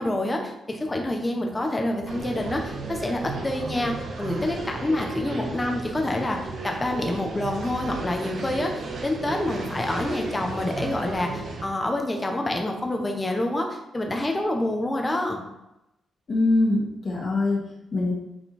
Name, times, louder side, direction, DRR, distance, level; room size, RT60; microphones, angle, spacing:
voice 1, 0.0-6.4 6.6-15.4, left 1 dB, 15° left, 2 dB, 1.3 m, -27 dB
sound 1, 2.0-11.6, right 3 dB, 50° right, 1.6 m, -34 dB
voice 2, 16.3-18.1, left 2 dB, 40° left, -4 dB, 2.2 m, -23 dB
8.9 x 5.5 x 4.5 m, 0.88 s
wide cardioid pair, 170°, 0 cm